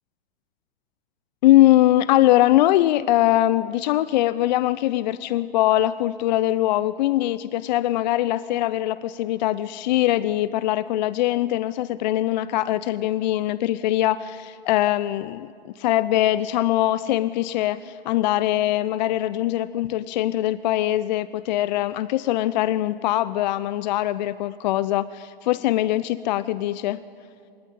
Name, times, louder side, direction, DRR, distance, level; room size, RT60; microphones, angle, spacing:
voice 1, 1.4-15.5 15.8-27.0, left 14 dB, 45° left, 16 dB, 0.6 m, -22 dB
21.5 x 19.0 x 9.4 m, 2.4 s
figure-of-eight pair, 105°, 30 cm